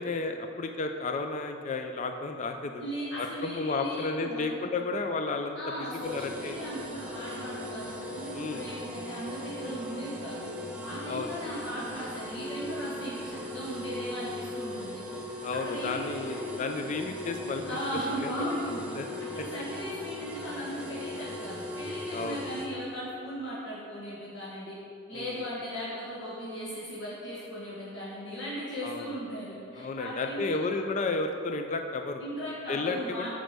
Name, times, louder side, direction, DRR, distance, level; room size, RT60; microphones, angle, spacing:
voice 1, 0.0-2.8 3.2-6.6 8.3-8.7 11.1-11.3 15.4-17.8 18.2-18.3 19.0-19.1 22.1-22.4 25.1-25.4 28.8-29.2 29.8-32.2 32.7-33.3, left 3 dB, 35° left, 5 dB, 0.4 m, -32 dB
voice 2, 2.8-4.7 5.5-10.4 10.8-15.0 15.6-16.6 17.6-18.8 19.3-24.7 25.1-30.7 32.2-33.3, equal, 65° left, -8 dB, 1.6 m, -37 dB
sound 1, 6.0-22.7, left 1 dB, 5° right, 0.8 m, -39 dB
7.9 x 5.2 x 6.6 m, 2.6 s
head